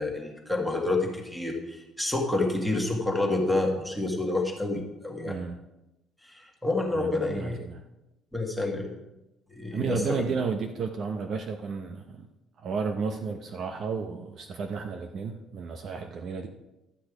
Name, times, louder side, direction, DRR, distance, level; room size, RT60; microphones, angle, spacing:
voice 1, 0.0-5.4 6.2-7.6 8.3-8.9 9.5-10.2, left 2 dB, ahead, 0 dB, 1.7 m, -28 dB
voice 2, 5.3-5.6 6.9-7.8 9.7-12.3 12.6-16.5, right 5 dB, 40° right, 5 dB, 0.7 m, -32 dB
12.5 x 8.5 x 4.9 m, 0.95 s
cardioid pair, 175°, 0 cm